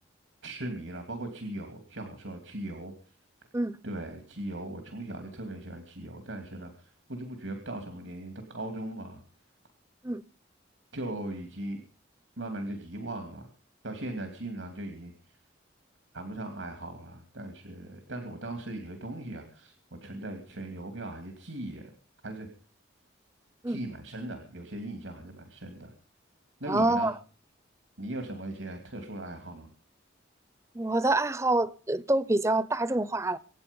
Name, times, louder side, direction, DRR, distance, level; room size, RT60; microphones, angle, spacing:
voice 1, 0.4-2.9 3.8-9.2 10.9-11.8 12.4-13.5 13.8-15.4 16.1-21.9 22.2-22.5 23.7-25.9 26.6-27.1 28.0-29.7, right 1 dB, 90° right, 2.9 m, -39 dB
voice 2, 26.7-27.1 30.7-33.4, right 2 dB, 15° right, 0.7 m, -26 dB
25.5 x 9.3 x 5.4 m
head